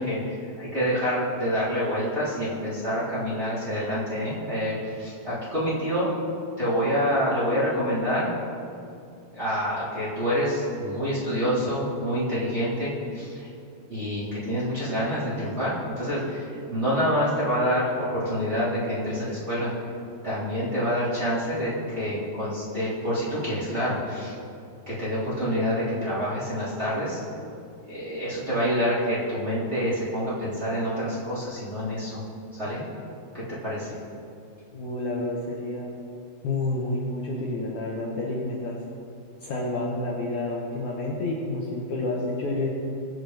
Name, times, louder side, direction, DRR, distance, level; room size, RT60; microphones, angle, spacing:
voice 1, 0.0-6.1 6.6-8.3 9.3-13.5 13.9-19.7 20.2-24.3 24.9-27.2 27.9-32.2 32.5-32.8 33.3-34.0, equal, 15° right, -11 dB, 3.4 m, -27 dB
voice 2, 34.7-35.9 36.4-38.8 39.4-42.7, left 2 dB, 60° left, -4 dB, 2.2 m, -29 dB
23.0 x 8.2 x 3.5 m, 2.6 s
omnidirectional pair, 4.7 m